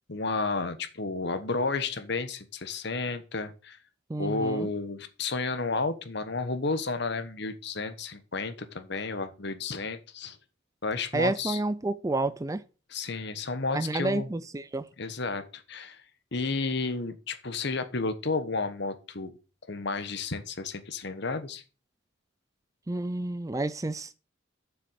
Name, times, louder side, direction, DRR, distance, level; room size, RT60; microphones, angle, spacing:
voice 1, 0.1-3.8 4.2-10.4 10.8-11.6 12.9-14.3 15.0-16.0 16.3-19.3 19.7-21.6, left 3 dB, 55° left, 1.2 m, -32 dB
voice 2, 4.1-4.7 11.1-12.6 13.7-14.9 22.9-24.2, right 2 dB, 15° right, 0.4 m, -30 dB
7.4 x 6.9 x 6.6 m
head